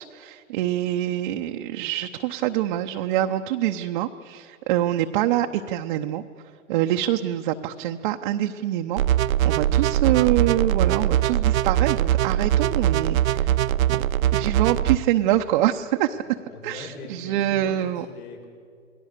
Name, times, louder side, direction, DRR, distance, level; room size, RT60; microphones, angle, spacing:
voice 1, 0.0-6.2 6.7-9.0 9.4-13.5 13.9-14.0 14.3-16.2 16.6-18.0, right 13 dB, 35° right, 4 dB, 0.8 m, -25 dB
sound 1, 9.0-15.0, right 12 dB, 70° right, 0.7 m, -21 dB
voice 2, 16.1-18.5, left 4 dB, 80° left, 1 dB, 6.4 m, -42 dB
29.0 x 20.5 x 6.7 m, 2.3 s
hypercardioid pair, 140°, 43 cm